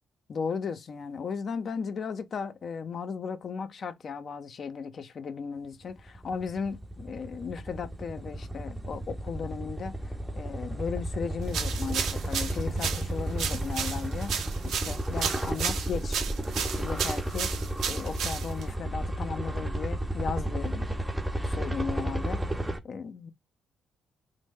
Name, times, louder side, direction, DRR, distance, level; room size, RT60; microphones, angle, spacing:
voice 1, 0.3-10.0 10.3-14.4 14.6-16.2 16.6-17.5 17.8-21.0 21.4-22.4 22.8-23.3, left 6 dB, 50° left, 0.5 m, -36 dB
sound 1, 6.0-22.8, right 1 dB, 10° right, 0.5 m, -32 dB
sound 2, 11.5-18.7, right 7 dB, 75° right, 0.5 m, -33 dB
3.1 x 2.0 x 3.4 m
cardioid pair, 90°, 0 cm